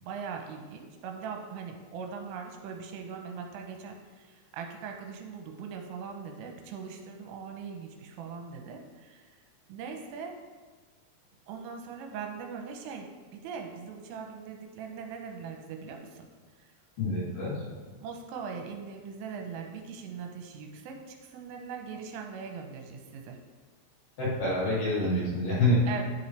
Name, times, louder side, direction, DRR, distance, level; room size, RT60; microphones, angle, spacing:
voice 1, 0.0-9.4 9.7-10.4 11.5-16.3 16.6-16.7 18.0-23.4 25.9-26.0, right 6 dB, 85° right, 3 dB, 3.3 m, -41 dB
voice 2, 17.0-17.6 24.2-25.8, left 1 dB, 45° left, -10 dB, 4.1 m, -27 dB
11.0 x 6.9 x 3.3 m, 1.4 s
omnidirectional pair, 5.8 m